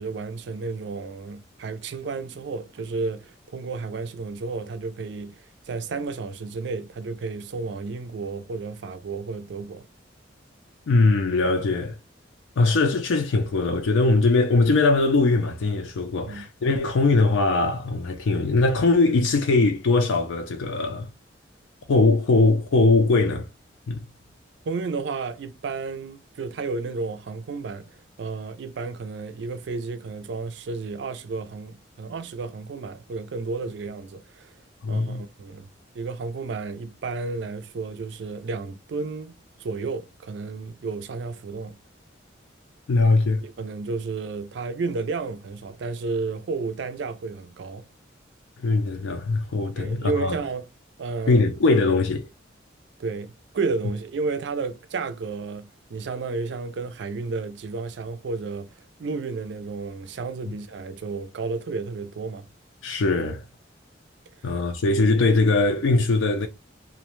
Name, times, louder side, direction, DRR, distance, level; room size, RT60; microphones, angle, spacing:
voice 1, 0.0-9.9 16.3-16.5 24.7-27.9 28.2-34.5 34.9-35.7 35.9-39.3 39.6-41.8 43.4-47.9 49.8-50.7 51.0-51.4 53.0-62.5, right 4 dB, 65° right, 0.4 m, -32 dB
voice 2, 10.9-12.0 12.6-21.1 21.9-23.5 23.9-24.0 34.8-35.2 42.9-43.4 48.6-50.4 51.3-52.3 62.8-63.4 64.4-66.5, left 3 dB, 80° left, 0.4 m, -21 dB
2.5 x 2.1 x 2.9 m
head